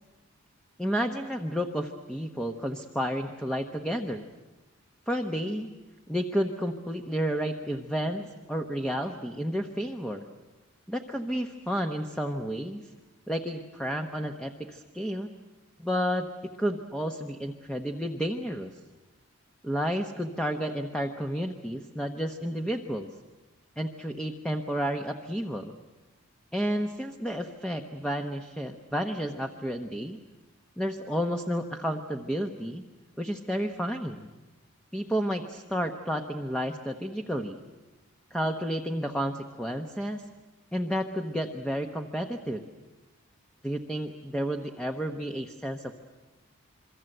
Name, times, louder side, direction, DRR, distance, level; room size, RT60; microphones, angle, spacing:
voice 1, 0.8-4.3 5.1-5.7 6.1-10.2 10.9-12.9 13.3-15.3 15.8-16.3 16.6-18.7 19.6-23.1 23.8-25.7 26.5-30.2 30.8-32.8 33.2-34.3 34.9-37.6 38.3-40.2 40.7-42.6 43.6-45.9, equal, 5° left, 4 dB, 1.0 m, -31 dB
27.5 x 23.0 x 7.9 m, 1.1 s
head